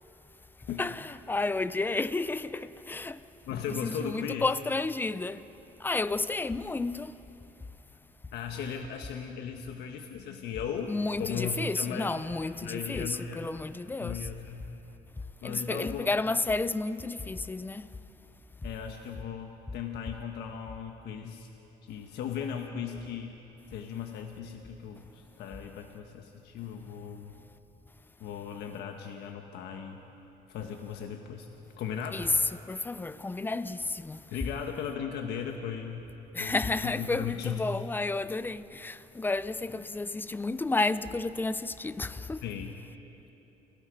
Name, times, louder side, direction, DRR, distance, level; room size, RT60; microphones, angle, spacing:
voice 1, 0.8-3.2 3.8-5.5 5.8-7.2 10.9-14.3 15.4-17.9 32.1-32.3 32.7-34.3 36.3-42.4, left 3 dB, 10° left, 0.6 m, -31 dB
voice 2, 3.4-4.5 8.3-12.1 12.6-13.5 14.0-14.8 15.4-16.1 18.6-21.5 21.8-23.4 23.7-27.4 28.2-30.0 30.5-31.5 31.8-32.3 34.3-36.0 36.4-37.6 42.4-42.7, left 7 dB, 75° left, 1.4 m, -37 dB
29.5 x 17.5 x 5.2 m
cardioid pair, 110°, 17 cm